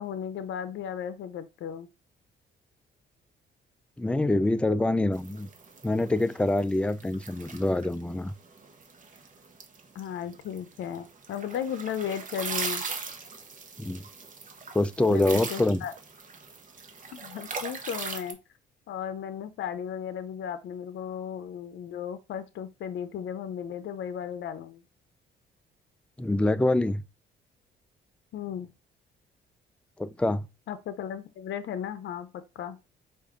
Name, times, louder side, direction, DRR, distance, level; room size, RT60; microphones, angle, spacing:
voice 1, 0.0-1.9 9.9-12.8 15.1-15.9 17.1-18.4 18.9-24.8 28.3-28.7 30.7-32.8, left 8 dB, 70° left, 0.6 m, -35 dB
voice 2, 4.0-5.5 5.8-8.3 13.8-14.0 14.7-15.8 26.2-27.0 30.0-30.5, left 2 dB, 5° left, 0.3 m, -25 dB
sound 1, 5.1-18.3, right 4 dB, 40° right, 1.0 m, -39 dB
4.7 x 2.6 x 3.5 m
cardioid pair, 90°, 20 cm